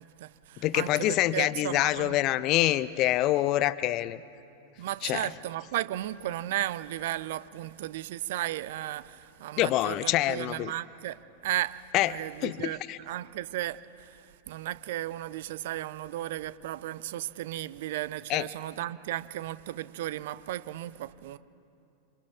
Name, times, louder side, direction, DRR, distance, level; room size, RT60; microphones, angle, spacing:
voice 1, 0.0-2.2 4.8-11.2 11.4-12.8 13.1-14.2 14.5-21.4, right 14 dB, 55° right, 0.6 m, -35 dB
voice 2, 0.6-4.2 5.0-5.3 9.6-10.7 11.9-12.1 12.4-13.0 18.3-18.5, left 15 dB, 40° left, 0.5 m, -26 dB
27.5 x 26.0 x 3.7 m
figure-of-eight pair, 90°, 0 cm